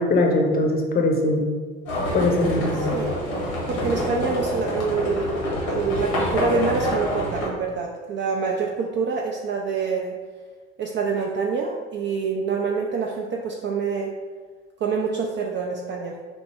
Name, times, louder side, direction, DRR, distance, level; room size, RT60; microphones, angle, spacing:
voice 1, 0.0-1.5 2.1-3.0, left 2 dB, 30° left, 2 dB, 0.7 m, -21 dB
Livestock farm animals working animals, 1.9-7.5, equal, 80° left, 1.0 m, -26 dB
voice 2, 2.7-3.1 3.7-5.3 5.7-10.2 10.8-14.2 14.8-16.2, right 5 dB, 35° right, 0 dB, 0.4 m, -26 dB
4.1 x 2.0 x 3.3 m, 1.4 s
figure-of-eight pair, 50°, 32 cm